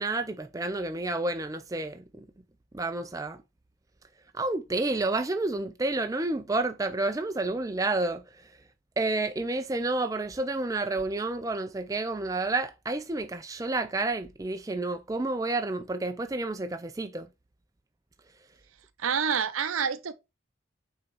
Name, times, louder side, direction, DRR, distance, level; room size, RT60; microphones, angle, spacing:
voice 1, 0.0-2.2 2.7-3.4 4.3-8.2 9.0-17.3, right 2 dB, 15° right, 0.4 m, -30 dB
voice 2, 19.0-20.1, right 6 dB, 80° right, 0.7 m, -27 dB
6.1 x 3.7 x 4.4 m
head